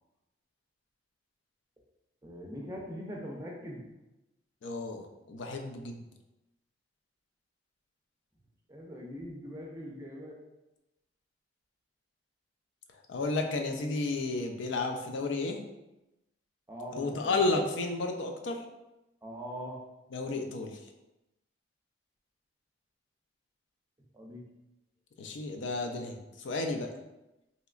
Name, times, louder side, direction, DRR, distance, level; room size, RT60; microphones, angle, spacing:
voice 1, 2.2-3.8 8.7-10.4 16.7-17.4 19.2-19.8 24.1-24.5, equal, 15° right, -2 dB, 0.5 m, -42 dB
voice 2, 4.6-6.0 12.9-15.6 17.0-18.6 20.1-20.9 25.2-26.9, left 3 dB, 80° left, 4 dB, 0.4 m, -32 dB
3.1 x 2.8 x 2.4 m, 0.96 s
head